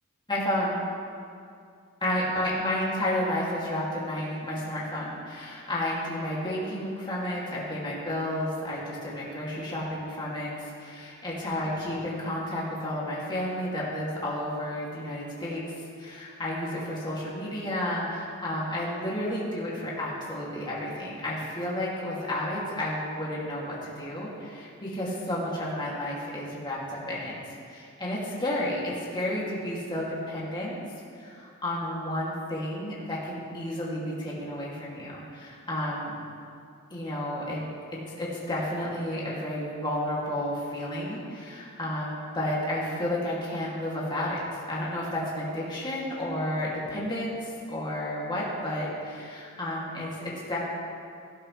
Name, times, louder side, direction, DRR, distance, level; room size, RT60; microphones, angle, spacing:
voice 1, 0.3-0.8 2.0-15.6 16.0-27.4 27.7-30.8 31.2-36.2 36.9-37.6 38.2-50.6, left 1 dB, 20° left, -6 dB, 2.5 m, -31 dB
17.5 x 12.5 x 3.3 m, 2.3 s
head